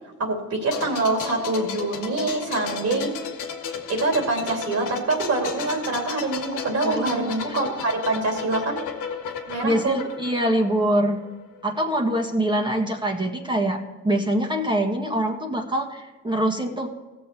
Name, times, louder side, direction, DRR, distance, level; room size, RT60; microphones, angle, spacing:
voice 1, 0.2-3.1 3.9-8.8 9.5-10.0, right 2 dB, 60° right, 1 dB, 2.9 m, -25 dB
sound 1, 0.7-11.3 11.6-11.8, left 7 dB, 85° left, 1.5 m, -34 dB
voice 2, 6.8-7.5 9.6-11.2 11.6-16.9, right 1 dB, 15° right, 1 dB, 1.7 m, -24 dB
16.5 x 7.1 x 4.4 m, 1.2 s
cardioid pair, 90°, 30 cm